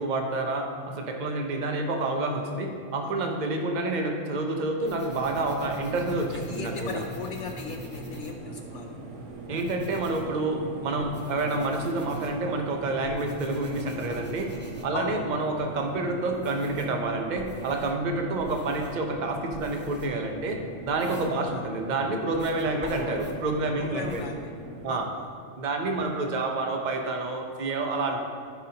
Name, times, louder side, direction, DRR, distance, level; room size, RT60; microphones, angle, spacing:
voice 1, 0.0-7.0 9.5-14.5 14.8-24.3 24.8-25.1 25.6-28.2, right 2 dB, 40° right, 3 dB, 0.8 m, -28 dB
sound 1, 4.8-8.8 9.3-17.0 17.3-21.9 22.3-24.3, equal, 10° right, 0.8 m, -48 dB
sound 2, 5.1-25.0, right 2 dB, 70° right, 1.3 m, -41 dB
voice 2, 6.3-8.9 14.9-15.2 21.3-21.7 23.7-24.5 24.9-25.2, left 5 dB, 65° left, 2 dB, 0.9 m, -37 dB
14.0 x 5.4 x 2.9 m, 2.4 s
omnidirectional pair, 1.4 m